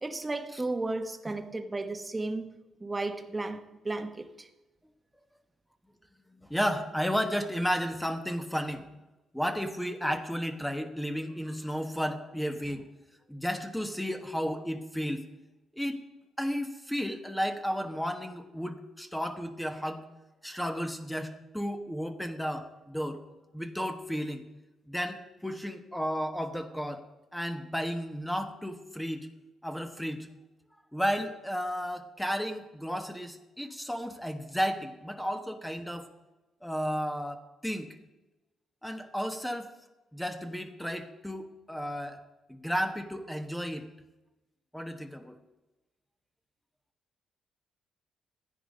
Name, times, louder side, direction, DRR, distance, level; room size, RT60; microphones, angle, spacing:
voice 1, 0.0-4.5, right 2 dB, 20° right, 1.3 m, -34 dB
voice 2, 6.5-8.9 9.3-12.9 13.3-15.3 15.8-16.0 16.4-20.0 20.4-23.2 23.5-24.4 24.9-27.0 27.3-29.3 29.6-30.3 30.9-36.1 36.6-37.9 38.8-39.7 40.1-42.2 42.5-43.9 44.7-45.3, equal, 5° left, 1.2 m, -33 dB
14.5 x 10.0 x 5.3 m
cardioid pair, 90°, 0 cm